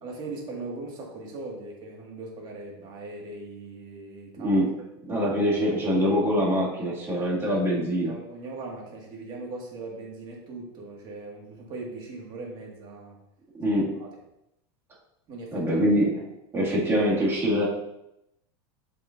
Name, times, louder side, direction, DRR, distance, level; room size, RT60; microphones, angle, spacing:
voice 1, 0.0-4.6 8.0-13.2 13.7-14.1 15.3-15.7, right 3 dB, 35° right, -1 dB, 1.9 m, -39 dB
voice 2, 4.4-4.7 5.1-8.1 13.6-13.9 15.5-16.2 16.5-17.7, equal, 20° right, -5 dB, 2.2 m, -24 dB
7.0 x 6.8 x 2.6 m, 0.84 s
supercardioid pair, 150°, 13 cm